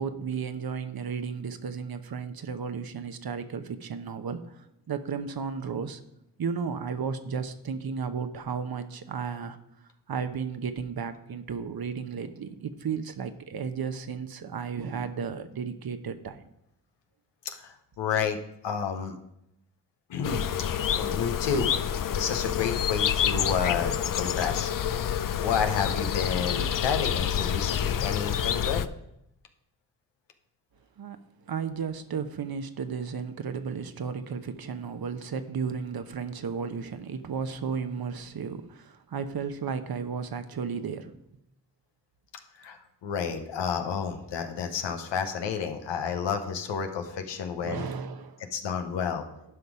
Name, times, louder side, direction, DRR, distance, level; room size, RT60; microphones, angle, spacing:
voice 1, 0.0-4.4 4.9-6.0 6.4-9.6 10.1-16.4 31.0-31.2 31.5-41.1 47.6-48.4, right 6 dB, 60° right, 9 dB, 1.0 m, -34 dB
voice 2, 17.4-18.4 18.6-19.2 20.1-20.5 20.9-21.7 22.1-24.7 25.4-28.9 42.6-47.9 48.5-49.2, left 6 dB, 90° left, 6 dB, 1.0 m, -30 dB
sound 1, 20.2-28.9, left 9 dB, 50° left, 0.6 m, -28 dB
11.0 x 5.4 x 4.9 m, 0.81 s
supercardioid pair, 40°, 42 cm